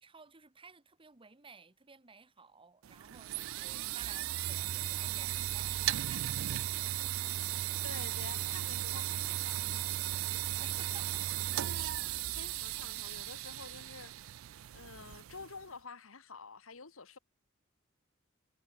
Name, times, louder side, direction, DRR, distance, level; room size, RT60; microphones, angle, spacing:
voice 1, 0.0-7.3 7.7-7.9 10.4-11.2, right 4 dB, 25° right, 1.4 m, -56 dB
sound 1, 2.8-15.6, right 13 dB, 80° right, 0.4 m, -36 dB
voice 2, 7.8-10.0 12.3-14.1 14.7-17.2, left 4 dB, 85° left, 1.8 m, -49 dB
head